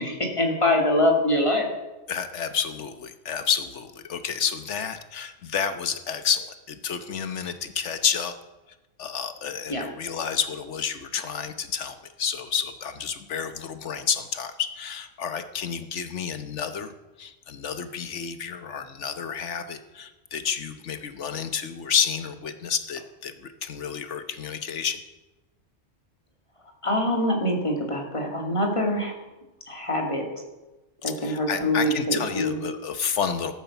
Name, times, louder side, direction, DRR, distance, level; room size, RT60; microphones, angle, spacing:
voice 1, 0.0-1.7 9.7-9.8 26.8-29.1 29.7-30.2 31.0-32.6, left 1 dB, 25° left, 1 dB, 2.3 m, -24 dB
voice 2, 2.1-8.3 9.0-25.0 31.0-33.5, left 7 dB, 80° left, 10 dB, 1.3 m, -30 dB
13.5 x 9.1 x 7.0 m, 1.1 s
omnidirectional pair, 1.2 m